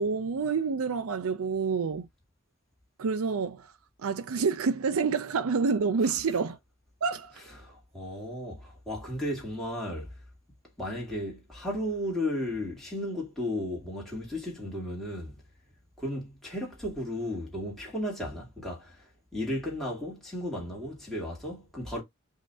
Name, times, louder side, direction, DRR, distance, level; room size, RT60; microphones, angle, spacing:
voice 1, 0.0-2.1 3.0-3.7 4.0-6.6 7.0-7.4, right 5 dB, 90° right, 0.5 m, -28 dB
voice 2, 7.6-10.1 10.8-15.4 16.0-19.0 19.3-22.0, left 1 dB, ahead, 2.5 m, -34 dB
5.3 x 2.8 x 3.5 m
head